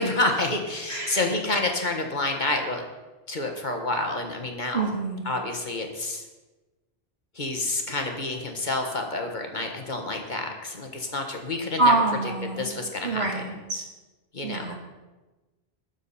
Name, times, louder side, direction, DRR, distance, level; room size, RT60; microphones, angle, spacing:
voice 1, 0.0-2.8 3.3-4.9 5.2-6.3 7.3-11.9 12.4-13.2 14.3-14.7, left 2 dB, 45° left, 3 dB, 1.6 m, -28 dB
voice 2, 4.7-5.3 11.8-12.7 13.0-13.9 14.4-14.7, right 2 dB, 75° right, 1 dB, 2.3 m, -25 dB
19.5 x 7.1 x 4.3 m, 1.2 s
omnidirectional pair, 1.1 m